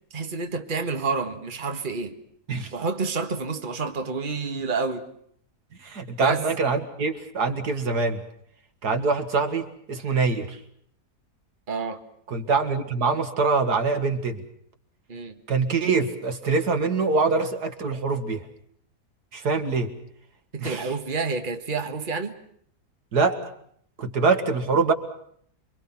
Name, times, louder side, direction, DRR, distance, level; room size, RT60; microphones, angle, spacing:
voice 1, 0.1-2.1 2.7-5.0 6.2-6.4 11.7-12.0 15.1-15.4 20.5-22.3, right 4 dB, 35° right, 1.8 m, -29 dB
voice 2, 5.8-8.2 8.8-10.6 12.3-14.4 15.5-18.5 19.3-19.9 20.6-20.9 23.1-23.4 24.0-24.9, right 4 dB, 80° right, 2.5 m, -24 dB
28.0 x 24.0 x 5.9 m
omnidirectional pair, 1.7 m